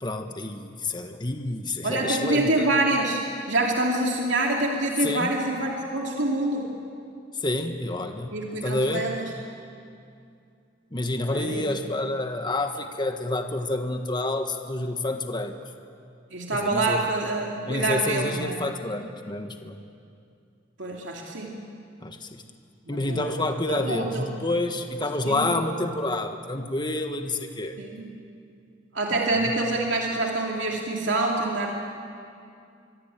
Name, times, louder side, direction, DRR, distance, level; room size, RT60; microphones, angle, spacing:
voice 1, 0.0-2.7 5.0-5.3 7.4-8.4 8.6-9.1 10.9-15.6 16.5-17.0 17.7-19.8 22.0-22.4 22.9-27.8 29.1-29.5, left 2 dB, 25° left, 5 dB, 1.5 m, -28 dB
voice 2, 1.8-3.2 3.5-6.7 8.3-9.3 11.3-11.7 16.3-18.7 20.8-21.5 22.9-23.4 23.7-24.3 25.2-25.5 27.8-28.1 28.9-31.7, right 2 dB, 75° right, -1 dB, 2.8 m, -26 dB
24.0 x 23.5 x 8.9 m, 2.4 s
head